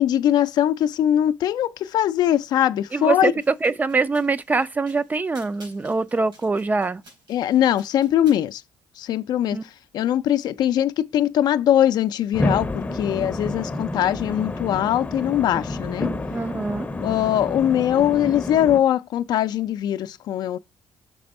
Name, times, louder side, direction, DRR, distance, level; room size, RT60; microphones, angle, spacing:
voice 1, 0.0-3.3 7.3-8.6 9.0-16.1 17.0-20.6, left 11 dB, 65° left, 0.4 m, -21 dB
voice 2, 2.9-7.0 9.5-9.6 16.3-16.9, right 4 dB, 20° right, 0.4 m, -23 dB
sound 1, 3.4-8.4, right 1 dB, 80° right, 4.1 m, -52 dB
sound 2, 12.3-18.8, left 2 dB, 20° left, 0.6 m, -29 dB
6.0 x 3.4 x 5.2 m
cardioid pair, 85°, 8 cm